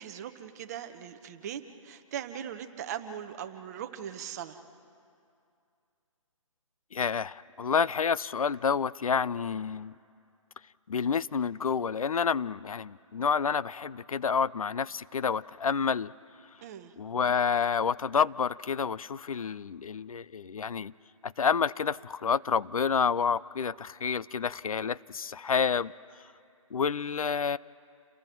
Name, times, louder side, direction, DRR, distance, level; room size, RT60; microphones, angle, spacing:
voice 1, 0.0-4.6 16.6-16.9, right 9 dB, 30° right, 8 dB, 1.0 m, -40 dB
voice 2, 6.9-9.9 10.9-16.1 17.0-20.9 21.2-25.9 26.7-27.6, left 6 dB, 85° left, 19 dB, 0.5 m, -29 dB
29.5 x 22.0 x 4.6 m, 2.4 s
hypercardioid pair, 155°, 18 cm